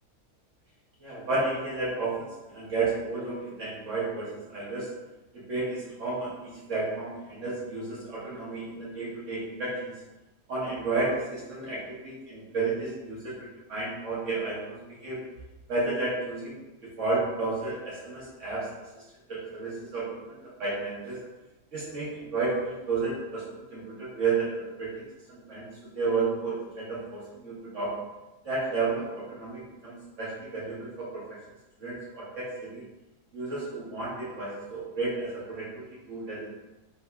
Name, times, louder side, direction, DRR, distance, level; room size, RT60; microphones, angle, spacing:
voice 1, 1.0-4.9 5.3-9.9 10.5-15.2 15.7-16.6 17.0-18.7 19.3-21.2 21.7-25.7 25.9-27.9 28.4-31.2 31.8-32.8 33.3-36.5, right 3 dB, 55° right, -8 dB, 1.0 m, -32 dB
3.5 x 2.8 x 2.2 m, 1.0 s
omnidirectional pair, 1.7 m